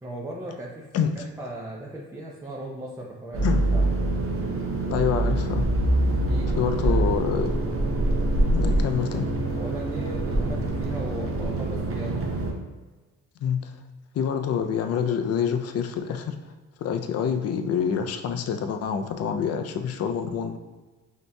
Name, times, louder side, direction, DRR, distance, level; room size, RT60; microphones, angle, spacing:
voice 1, 0.0-0.9 1.2-3.9 6.3-7.1 9.5-12.3, right 1 dB, 10° right, -3 dB, 0.6 m, -38 dB
sound 1, 3.3-12.5, right 1 dB, 45° right, 0.8 m, -25 dB
voice 2, 4.9-5.6 6.6-7.5 8.5-9.3 13.4-13.8 14.1-16.4 16.8-20.6, left 7 dB, 55° left, 7 dB, 0.5 m, -26 dB
5.4 x 2.9 x 2.2 m, 1.3 s
cardioid pair, 90°, 30 cm